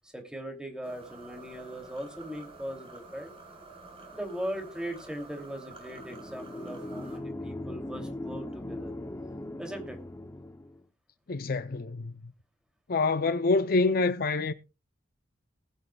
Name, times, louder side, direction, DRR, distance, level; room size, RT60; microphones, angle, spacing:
voice 1, 0.1-3.3 4.1-8.9 9.6-10.0, equal, 5° right, 2.8 m, -39 dB
sound 1, 0.8-7.2, right 3 dB, 30° right, 4.6 m, -49 dB
sound 2, 5.9-10.8, left 1 dB, 15° left, 0.7 m, -39 dB
voice 2, 11.3-12.3 12.9-14.5, left 3 dB, 50° left, 0.6 m, -26 dB
20.0 x 9.3 x 2.3 m
head